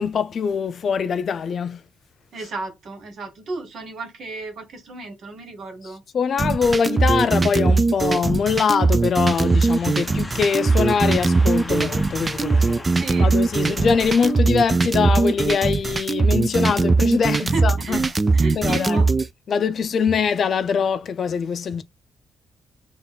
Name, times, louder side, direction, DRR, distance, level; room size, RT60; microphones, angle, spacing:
voice 1, 0.0-1.8 6.1-12.9 13.2-18.0 18.6-19.1 19.5-21.8, left 6 dB, 55° left, 0.4 m, -23 dB
voice 2, 2.3-6.0 12.9-13.3 17.4-18.0 18.3-19.1, right 3 dB, 60° right, 1.4 m, -33 dB
sound 1, 6.4-19.3, right 3 dB, 25° right, 0.3 m, -20 dB
sound 2, 9.3-14.3, left 1 dB, 10° left, 0.6 m, -37 dB
3.9 x 2.5 x 3.9 m
cardioid pair, 90°, 0 cm